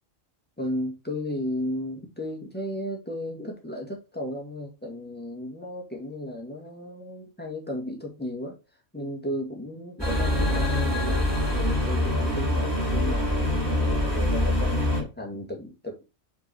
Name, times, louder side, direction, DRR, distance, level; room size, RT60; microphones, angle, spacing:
voice 1, 0.6-8.6 8.9-16.1, left 1 dB, 10° left, 0 dB, 1.9 m, -34 dB
sound 1, 10.0-15.0, left 1 dB, 20° right, 2.9 m, -24 dB
5.4 x 4.6 x 4.3 m, 0.28 s
omnidirectional pair, 1.2 m